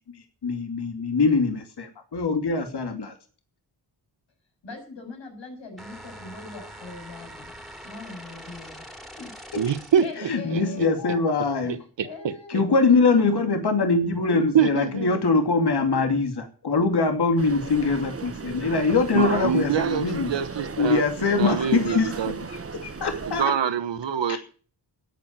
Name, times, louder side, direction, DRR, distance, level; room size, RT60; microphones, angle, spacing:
voice 1, 0.4-3.1 10.3-11.7 12.5-20.3 20.8-22.6 22.8-23.5 24.3-24.4, left 4 dB, 65° left, 2.7 m, -23 dB
voice 2, 4.6-7.5 7.8-8.9 9.2-9.7 10.0-11.0 12.0-13.1, left 3 dB, 90° left, 7.0 m, -42 dB
sound 1, 5.8-10.2, equal, ahead, 3.0 m, -43 dB
voice 3, 9.6-10.6 14.3-15.2 19.1-21.0 21.4-22.3 23.4-24.4, right 8 dB, 85° right, 1.3 m, -25 dB
sound 2, 17.4-23.4, right 5 dB, 30° right, 1.1 m, -34 dB
13.0 x 9.0 x 8.8 m
wide cardioid pair, 85°, 43 cm